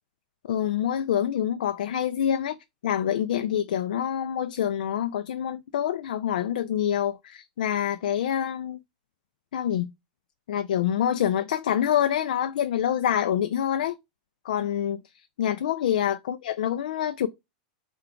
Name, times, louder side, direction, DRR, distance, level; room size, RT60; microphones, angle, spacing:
voice 1, 0.5-2.6 2.8-8.8 9.5-9.9 10.5-14.0 14.4-17.3, left 10 dB, 90° left, 0.3 m, -26 dB
3.7 x 2.3 x 4.3 m
supercardioid pair, 160°, 5 cm